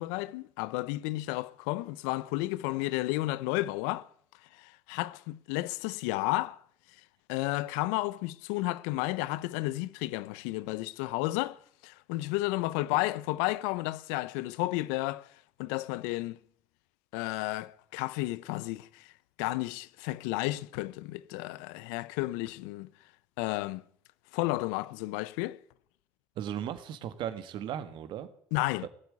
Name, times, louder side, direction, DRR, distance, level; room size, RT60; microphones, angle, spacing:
voice 1, 0.0-4.1 4.6-6.6 7.3-15.3 15.6-16.4 17.1-19.1 19.4-22.9 23.4-23.8 24.3-25.6 28.5-28.9, left 19 dB, 85° left, 0.6 m, -32 dB
voice 2, 26.4-28.3 28.8-28.9, right 10 dB, 70° right, 1.8 m, -36 dB
17.5 x 8.3 x 9.7 m
supercardioid pair, 75°, 9 cm